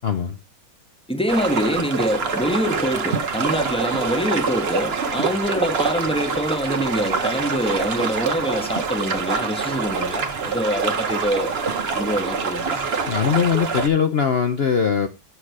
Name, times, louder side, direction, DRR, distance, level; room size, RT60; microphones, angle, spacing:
voice 1, 0.0-0.4 13.1-15.1, left 7 dB, 80° left, 0.5 m, -20 dB
voice 2, 1.1-11.6 11.9-12.9, equal, 5° left, 1.1 m, -25 dB
sound 1, 1.3-13.9, right 5 dB, 40° right, 1.0 m, -25 dB
8.7 x 7.0 x 4.8 m
omnidirectional pair, 2.1 m